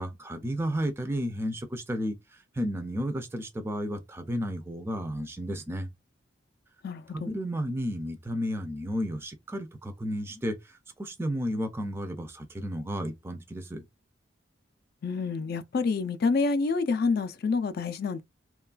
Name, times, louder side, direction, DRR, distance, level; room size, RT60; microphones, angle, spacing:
voice 1, 0.0-2.2 2.6-5.9 7.1-13.8, equal, 10° right, 0.4 m, -32 dB
voice 2, 6.8-7.3 15.0-18.2, left 4 dB, 50° left, 0.4 m, -28 dB
3.1 x 2.3 x 2.3 m
head